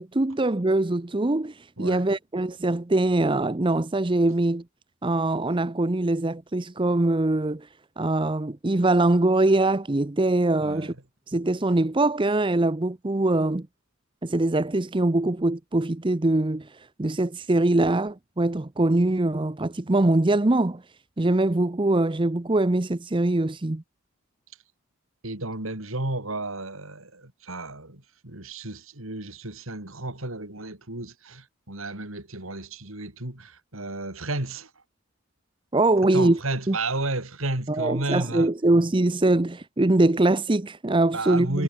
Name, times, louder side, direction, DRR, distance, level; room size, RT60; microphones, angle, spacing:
voice 1, 0.0-4.6 5.0-7.7 8.0-10.9 11.3-13.7 14.2-16.7 17.0-20.8 21.2-23.8 35.7-36.4 36.7-36.8 37.7-41.6, right 2 dB, 25° right, 0.7 m, -23 dB
voice 2, 10.6-11.0 25.2-34.7 36.1-38.5 41.1-41.6, right 2 dB, 75° right, 4.3 m, -32 dB
head